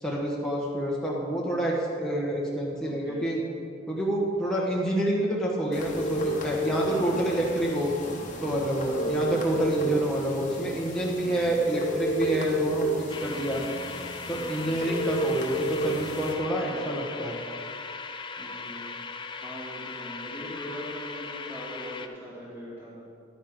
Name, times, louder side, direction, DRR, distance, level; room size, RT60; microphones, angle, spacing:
voice 1, 0.0-3.4 3.9-7.9 8.4-13.6 14.3-17.4, right 1 dB, 5° left, -5 dB, 1.2 m, -28 dB
voice 2, 2.8-3.2 6.8-7.2 8.8-9.1 9.8-10.1 11.2-11.5 13.2-13.7 14.3-14.9 18.4-23.0, equal, 15° right, -8 dB, 2.3 m, -42 dB
sound 1, 5.7-16.3, right 1 dB, 40° left, 1.2 m, -32 dB
sound 2, 13.1-22.1, left 4 dB, 25° left, 0.4 m, -39 dB
10.5 x 9.4 x 3.7 m, 2.3 s
head